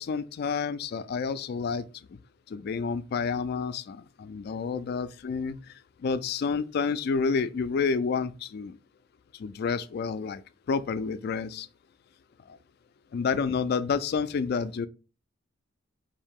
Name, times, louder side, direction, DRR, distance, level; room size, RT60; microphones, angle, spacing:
voice 1, 0.0-1.8 2.5-5.6 6.0-8.7 9.4-10.4 10.7-11.7 13.1-14.9, left 5 dB, 50° left, 0.3 m, -29 dB
4.8 x 2.7 x 3.6 m
head